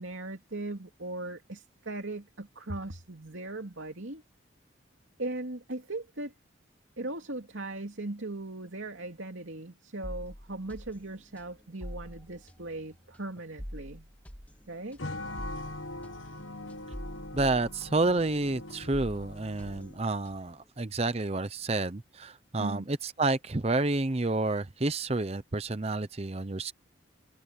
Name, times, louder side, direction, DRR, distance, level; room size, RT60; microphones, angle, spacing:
voice 1, 0.0-4.2 5.2-6.3 7.0-14.1 14.7-15.0 22.6-22.9, right 2 dB, 75° right, 2.6 m, -38 dB
sound 1, 10.0-18.4 18.7-20.6, equal, 10° left, 2.1 m, -45 dB
sound 2, 15.0-20.1, left 2 dB, 80° left, 1.3 m, -42 dB
voice 2, 17.3-26.7, right 2 dB, 30° right, 0.7 m, -29 dB
head